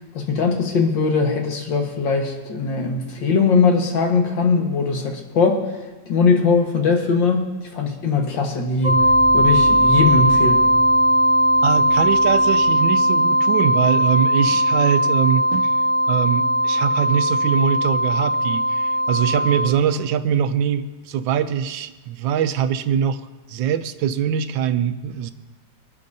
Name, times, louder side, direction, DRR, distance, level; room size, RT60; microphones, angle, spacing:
voice 1, 0.1-5.6 6.1-7.5 7.7-9.1 9.3-10.6, left 4 dB, 75° left, 2 dB, 2.1 m, -20 dB
sound 1, 8.8-19.7, equal, 25° right, 2.1 m, -18 dB
voice 2, 11.6-15.7 16.1-25.3, right 9 dB, 85° right, 11 dB, 1.3 m, -22 dB
25.0 x 9.3 x 2.7 m, 1.2 s
omnidirectional pair, 2.0 m